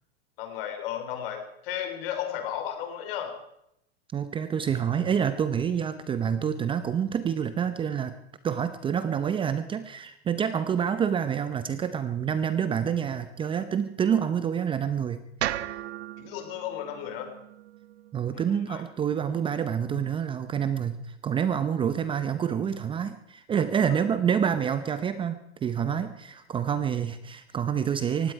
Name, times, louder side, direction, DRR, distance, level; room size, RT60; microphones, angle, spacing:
voice 1, 0.4-3.4 16.2-17.3 18.7-18.8, left 10 dB, 55° left, 6 dB, 3.7 m, -34 dB
voice 2, 4.1-8.2 8.4-15.6 18.1-28.3, right 8 dB, 15° right, 12 dB, 0.6 m, -27 dB
sound 1, 15.4-19.6, right 13 dB, 75° right, 0.9 m, -37 dB
18.5 x 16.0 x 4.7 m, 0.78 s
hypercardioid pair, 135°, 33 cm